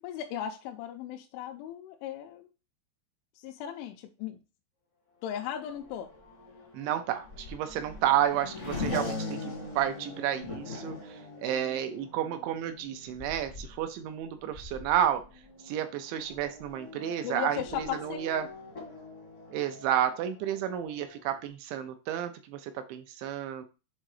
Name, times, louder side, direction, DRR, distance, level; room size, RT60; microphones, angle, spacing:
voice 1, 0.0-2.5 3.4-4.4 5.2-6.1 17.2-18.2, left 10 dB, 85° left, 2 dB, 3.0 m, -37 dB
Race car auto racing / Accelerating revving vroom, 5.3-21.5, left 3 dB, 50° left, 0.8 m, -42 dB
voice 2, 6.7-11.0 11.4-15.2 15.7-17.6 18.0-18.4 19.5-23.7, right 10 dB, 80° right, 8 dB, 2.8 m, -31 dB
7.6 x 3.6 x 4.8 m, 0.31 s
omnidirectional pair, 5.5 m